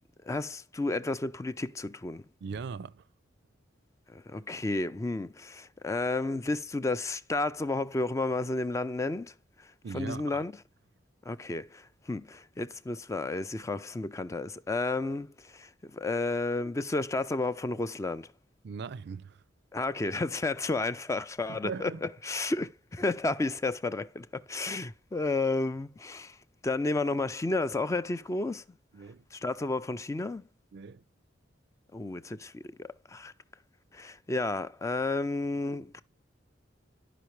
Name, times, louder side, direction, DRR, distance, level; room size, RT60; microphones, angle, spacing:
voice 1, 0.3-2.3 4.1-9.3 9.6-10.5 11.3-18.3 19.7-26.4 26.6-28.6 29.3-30.4 31.9-33.3 33.9-36.0, left 2 dB, 15° left, 0.3 m, -32 dB
voice 2, 2.4-3.0 9.8-10.4 18.6-19.4 21.5-22.0 28.9-29.2 30.7-31.0, right 5 dB, 65° right, 0.4 m, -39 dB
11.5 x 5.0 x 3.1 m
head